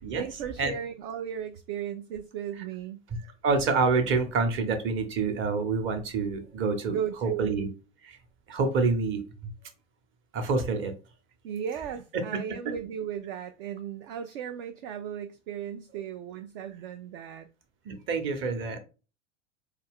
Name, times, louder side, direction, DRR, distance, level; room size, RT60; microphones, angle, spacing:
voice 1, 0.2-3.0 6.9-7.5 11.4-17.5, right 8 dB, 45° right, 0.5 m, -35 dB
voice 2, 3.4-7.0 7.2-7.7 8.0-8.2 8.5-9.5 10.3-10.9 12.1-12.2 17.8-18.8, right 4 dB, 30° right, 0.9 m, -27 dB
4.3 x 2.4 x 3.6 m
figure-of-eight pair, 80°, 38 cm